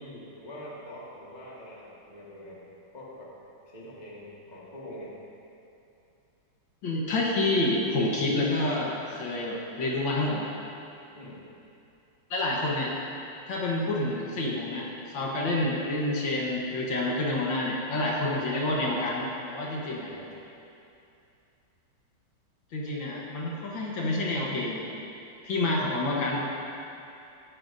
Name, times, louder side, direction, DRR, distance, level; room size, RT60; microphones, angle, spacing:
voice 1, 0.0-2.7 2.9-3.3 3.7-5.1 11.1-11.5 19.7-20.5, equal, 20° left, -6 dB, 1.6 m, -44 dB
voice 2, 6.8-10.5 12.3-12.9 13.5-14.9 15.1-20.1 22.7-24.9 25.4-26.4, left 2 dB, 70° left, -3 dB, 2.0 m, -28 dB
14.5 x 11.0 x 2.6 m, 2.7 s
omnidirectional pair, 2.2 m